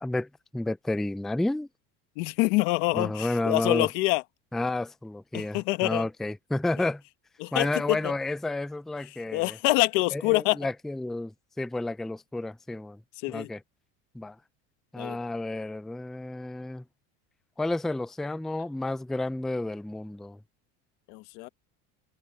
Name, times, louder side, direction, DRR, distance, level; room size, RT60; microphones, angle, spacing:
voice 1, 0.0-1.7 2.9-3.9 4.5-7.0 7.5-9.6 10.1-13.0 13.3-13.6 14.1-14.4 14.9-16.8 17.6-20.4, left 2 dB, ahead, 0.4 m, -31 dB
voice 2, 2.2-4.2 5.3-6.0 7.4-8.0 9.3-10.6 13.2-13.5 15.0-15.2 21.1-21.5, left 23 dB, 75° left, 1.5 m, -26 dB
supercardioid pair, 135°, 35 cm